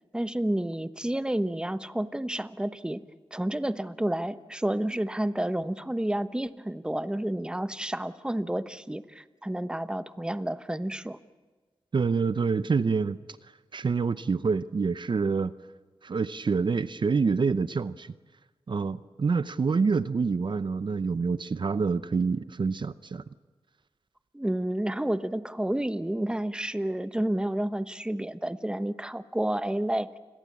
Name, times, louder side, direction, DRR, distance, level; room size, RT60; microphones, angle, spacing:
voice 1, 0.1-3.0 3.3-11.2 24.3-30.1, right 1 dB, 10° right, 12 dB, 1.0 m, -30 dB
voice 2, 11.9-13.2 13.7-15.5 16.0-18.1 18.7-23.2, right 5 dB, 55° right, 14 dB, 0.7 m, -27 dB
29.0 x 21.5 x 8.6 m, 1.3 s
wide cardioid pair, 70°, 9 cm